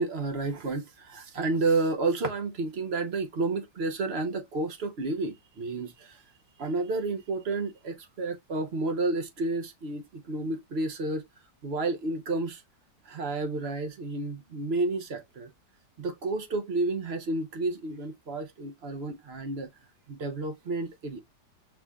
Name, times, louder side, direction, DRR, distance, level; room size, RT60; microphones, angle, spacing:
voice 1, 0.0-6.2 6.6-11.2 11.6-12.6 13.1-15.5 16.0-19.7 20.1-21.2, right 3 dB, 45° right, 0.9 m, -31 dB
5.9 x 3.3 x 2.3 m
omnidirectional pair, 1.8 m